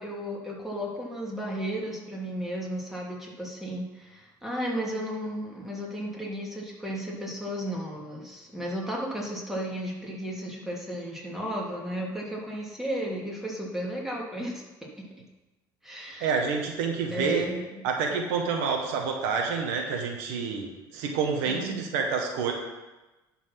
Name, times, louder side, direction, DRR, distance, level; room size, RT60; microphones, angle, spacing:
voice 1, 0.0-14.7 15.8-16.4 17.1-17.8 21.4-21.8, equal, 5° right, -3 dB, 3.0 m, -34 dB
voice 2, 15.9-17.4 17.8-22.5, right 5 dB, 80° right, 2 dB, 1.5 m, -28 dB
11.5 x 4.6 x 6.0 m, 1.1 s
supercardioid pair, 85°, 10 cm